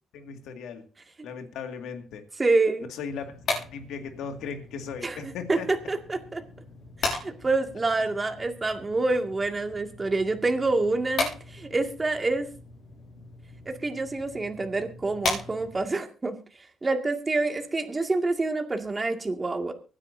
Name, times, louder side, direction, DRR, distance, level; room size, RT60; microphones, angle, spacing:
voice 1, 0.1-0.9 1.2-2.3 2.9-5.7, left 6 dB, 85° left, 5 dB, 2.1 m, -37 dB
voice 2, 2.4-2.9 5.0-6.4 7.0-12.5 13.7-16.4 16.8-19.7, right 3 dB, 25° right, 4 dB, 2.1 m, -27 dB
sound 1, 3.1-16.0, left 3 dB, 60° left, 7.0 m, -37 dB
24.0 x 9.8 x 2.7 m, 0.35 s
cardioid pair, 90°, 0 cm